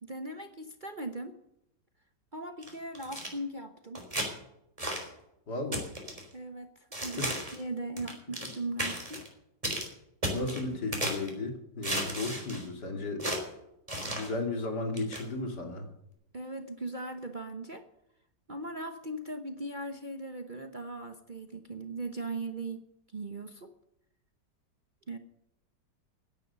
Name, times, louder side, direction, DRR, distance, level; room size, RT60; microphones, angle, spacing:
voice 1, 0.0-1.4 2.3-4.0 6.3-6.7 7.0-9.2 16.3-17.8 18.5-22.9 23.1-23.7 25.1-25.2, right 2 dB, 35° right, 7 dB, 1.0 m, -39 dB
sound 1, 2.6-3.3 4.0-4.3 4.8-5.1 5.7-6.2 6.9-7.6 8.0-8.5 8.8-9.3 9.6-9.9 10.2-11.3 11.8-12.7 13.2-13.4 13.9-14.3 15.0-15.2, right 1 dB, 20° right, 3.9 m, -34 dB
voice 2, 5.5-5.9 7.2-7.3 10.3-13.3 14.0-15.9, left 2 dB, 70° left, 4 dB, 3.1 m, -34 dB
16.5 x 10.5 x 6.8 m, 0.82 s
omnidirectional pair, 1.9 m